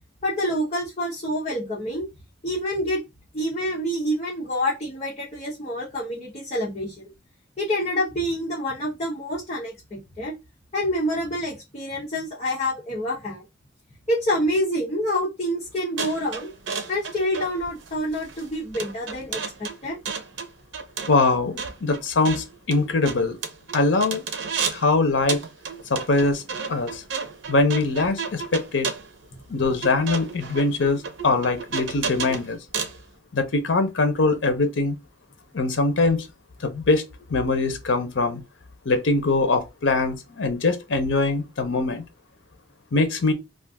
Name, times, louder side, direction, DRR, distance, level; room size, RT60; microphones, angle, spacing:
voice 1, 0.2-2.1 2.4-3.0 3.3-7.1 7.6-10.3 10.7-13.4 14.1-16.5 16.9-20.0, equal, 35° left, 0.8 m, -27 dB
sound 1, 16.0-24.9 25.3-33.0, right 5 dB, 85° right, 0.6 m, -33 dB
voice 2, 21.1-23.4 23.7-24.2 24.7-25.4 25.9-26.4 26.7-27.0 27.5-28.9 29.5-32.6 33.3-35.0 35.5-36.3 36.6-38.4 38.9-42.0 42.9-43.3, left 3 dB, 85° left, 0.7 m, -22 dB
2.4 x 2.4 x 3.5 m
head